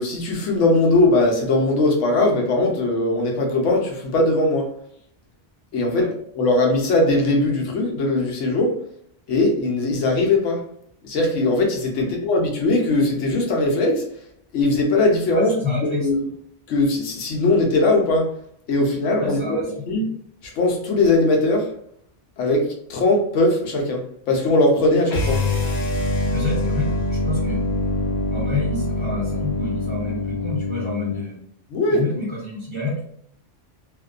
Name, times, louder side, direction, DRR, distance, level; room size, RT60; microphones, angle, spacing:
voice 1, 0.0-4.7 5.7-8.8 9.3-10.6 11.0-14.0 14.5-15.5 15.8-16.2 16.7-18.3 18.7-19.4 19.9-20.1 20.6-21.7 22.4-25.4 31.7-32.0, left 2 dB, 80° left, 1 dB, 1.0 m, -20 dB
voice 2, 15.3-16.1 19.2-19.7 26.2-27.6 28.3-31.3 31.9-33.0, left 3 dB, 30° right, -6 dB, 0.8 m, -28 dB
sound 1, 25.1-31.2, left 1 dB, 60° left, 1.1 m, -24 dB
2.5 x 2.1 x 2.4 m, 0.65 s
omnidirectional pair, 1.2 m